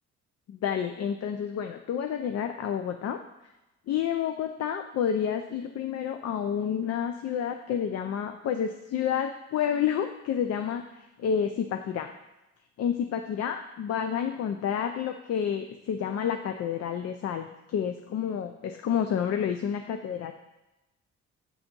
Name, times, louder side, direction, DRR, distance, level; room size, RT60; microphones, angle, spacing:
voice 1, 0.5-3.2 3.9-12.1 12.8-20.3, left 8 dB, 55° left, 6 dB, 0.5 m, -29 dB
7.3 x 3.5 x 5.2 m, 0.98 s
cardioid pair, 90°, 30 cm